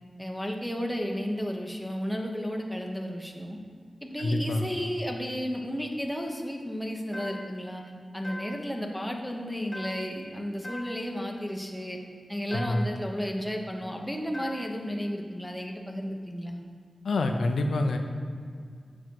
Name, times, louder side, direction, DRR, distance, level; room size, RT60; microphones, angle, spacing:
voice 1, 0.2-3.6 4.0-7.8 8.1-12.0 12.3-16.6, equal, ahead, 1 dB, 1.0 m, -33 dB
voice 2, 4.2-4.7 12.5-12.8 17.0-18.0, left 2 dB, 90° left, 5 dB, 0.6 m, -27 dB
sound 1, 7.1-7.7 8.2-8.8 9.7-10.3 10.6-11.2 12.5-13.0 14.3-14.9, left 1 dB, 20° left, 1.5 m, -42 dB
7.8 x 6.2 x 4.6 m, 2.1 s
wide cardioid pair, 90°, 0 cm